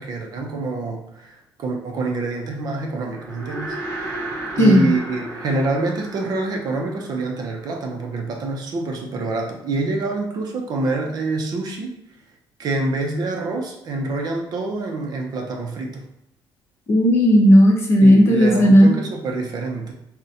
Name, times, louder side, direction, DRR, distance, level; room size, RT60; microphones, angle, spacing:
voice 1, 0.0-4.2 4.6-12.0 12.6-16.1 18.0-19.9, right 3 dB, 45° right, 1 dB, 0.5 m, -26 dB
sound 1, 3.0-8.5, right 2 dB, 10° right, 1.3 m, -34 dB
voice 2, 16.9-18.9, equal, 30° left, -1 dB, 0.6 m, -13 dB
3.8 x 2.1 x 2.7 m, 0.83 s
cardioid pair, 165°, 9 cm